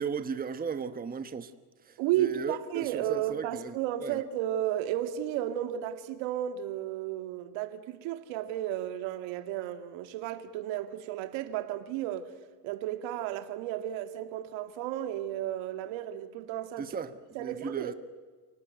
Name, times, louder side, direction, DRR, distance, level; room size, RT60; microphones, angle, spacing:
voice 1, 0.0-1.5 1.8-3.7 4.0-4.2 16.8-17.9, right 6 dB, 20° right, 1.2 m, -36 dB
voice 2, 2.0-12.3 12.6-16.9 17.3-17.9, right 12 dB, 70° right, 2.3 m, -33 dB
29.5 x 18.5 x 9.3 m
supercardioid pair, 115°, 47 cm